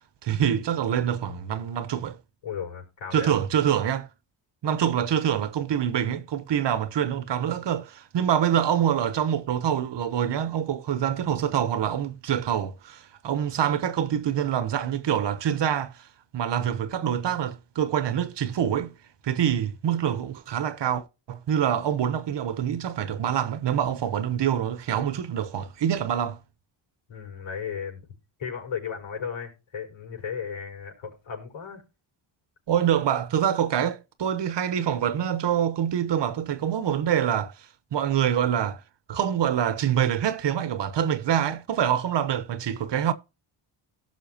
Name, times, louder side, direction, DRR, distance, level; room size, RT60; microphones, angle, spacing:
voice 1, 0.2-2.2 3.1-4.1 4.6-15.9 16.3-18.9 19.2-26.4 32.7-37.5 37.9-38.8 39.1-43.1, right 9 dB, 60° right, 1.2 m, -25 dB
voice 2, 2.4-3.4 27.1-28.0 28.4-31.8, left 7 dB, 70° left, 6.1 m, -35 dB
18.0 x 6.2 x 2.9 m
cardioid pair, 100°, 48 cm